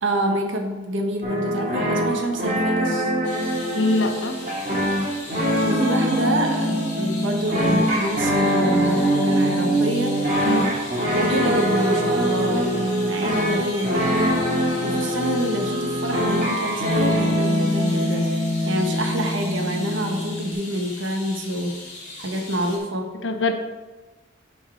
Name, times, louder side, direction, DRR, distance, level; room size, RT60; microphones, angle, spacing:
voice 1, 0.0-3.1 5.6-10.5 11.1-21.8 22.2-23.1, equal, 85° right, 3 dB, 1.2 m, -27 dB
sound 1, 1.2-20.5, equal, 45° right, 2.1 m, -23 dB
sound 2, 3.2-22.8, left 2 dB, 40° left, 2.3 m, -39 dB
voice 2, 3.8-4.4 10.4-10.7 23.2-23.5, left 2 dB, 75° left, 6 dB, 0.8 m, -23 dB
Wind instrument woodwind instrument, 10.9-16.2, right 2 dB, 20° right, 1.6 m, -31 dB
9.1 x 4.5 x 4.8 m, 1.2 s
head